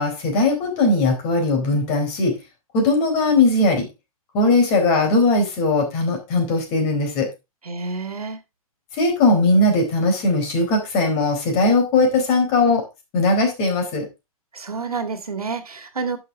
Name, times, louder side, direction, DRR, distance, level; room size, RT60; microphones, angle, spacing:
voice 1, 0.0-2.3 2.7-3.8 4.3-7.3 8.9-12.8 13.1-14.1, left 2 dB, 35° left, 3 dB, 4.2 m, -19 dB
voice 2, 7.6-8.4 14.5-16.2, right 4 dB, 80° right, 8 dB, 2.0 m, -29 dB
11.0 x 6.6 x 3.6 m, 0.25 s
figure-of-eight pair, 120°, 19 cm